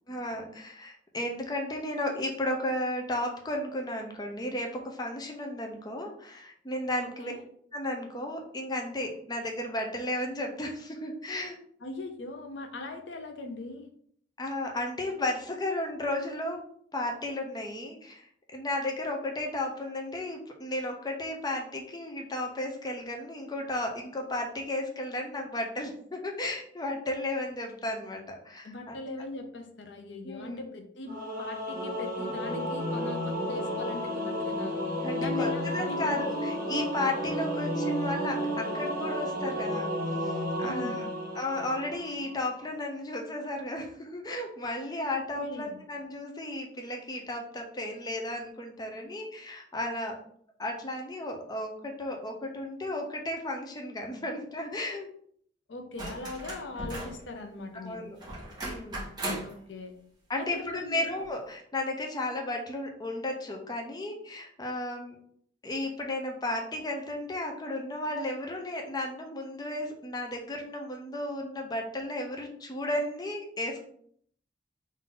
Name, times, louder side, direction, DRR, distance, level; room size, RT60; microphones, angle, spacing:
voice 1, 0.1-7.3 7.7-11.6 14.4-16.6 16.9-29.0 30.2-30.7 35.0-35.5 35.7-39.9 40.3-41.1 41.3-50.2 50.6-55.1 57.7-58.2 58.6-59.1 60.3-65.2 65.6-73.8, left 1 dB, 20° left, 2 dB, 0.5 m, -34 dB
voice 2, 7.0-7.4 11.8-13.9 28.6-34.8 35.1-36.5 40.6-41.1 45.4-45.8 55.7-58.1 59.4-59.9 60.4-61.0, left 2 dB, 75° left, 5 dB, 0.6 m, -40 dB
Singing / Musical instrument, 31.1-42.3, equal, 50° right, 0.9 m, -32 dB
sound 1, 55.9-57.2 58.2-59.6 61.2-61.3, right 1 dB, 25° right, 1.6 m, -37 dB
3.7 x 2.6 x 3.8 m, 0.63 s
head